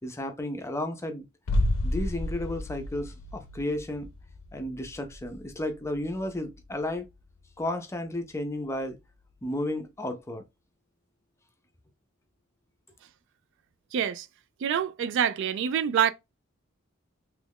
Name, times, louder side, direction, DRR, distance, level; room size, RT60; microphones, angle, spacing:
voice 1, 0.0-1.3 1.8-4.1 4.5-7.1 7.6-9.0 9.4-10.4, left 1 dB, 15° left, 0.5 m, -33 dB
sound 1, 1.5-7.2 7.5-7.6, left 1 dB, 85° left, 0.5 m, -32 dB
voice 2, 13.9-14.3 14.6-16.1, right 8 dB, 60° right, 0.3 m, -26 dB
3.1 x 2.4 x 3.4 m
head